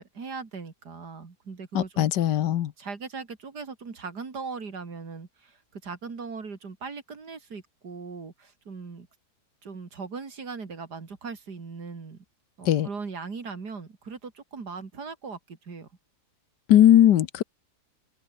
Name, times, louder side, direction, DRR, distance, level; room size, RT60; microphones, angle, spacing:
voice 1, 0.0-2.1 2.8-9.1 9.6-12.2 12.6-15.9, right 4 dB, 70° right, 3.3 m, -39 dB
voice 2, 1.7-2.7 12.7-12.9 16.7-17.4, left 11 dB, 85° left, 1.5 m, -19 dB
omnidirectional pair, 1.8 m